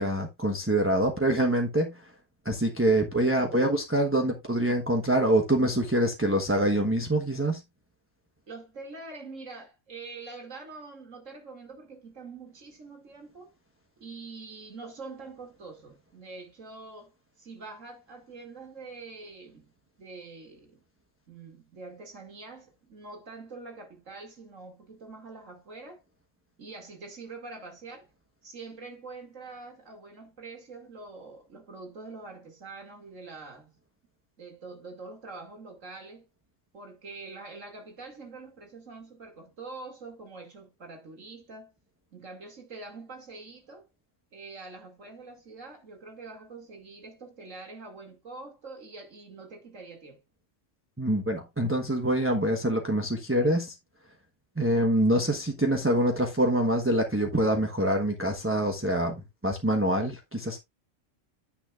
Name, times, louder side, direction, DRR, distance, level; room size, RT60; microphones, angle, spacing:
voice 1, 0.0-2.1 2.4-7.6 51.0-53.8 54.6-60.6, right 1 dB, 10° right, 1.1 m, -25 dB
voice 2, 8.5-13.5 14.0-17.1 17.4-20.8 21.3-26.0 26.6-28.1 28.4-33.8 34.4-36.2 36.7-41.7 42.1-43.9 44.3-50.2, right 3 dB, 75° right, 2.9 m, -45 dB
9.8 x 8.7 x 2.4 m
omnidirectional pair, 1.3 m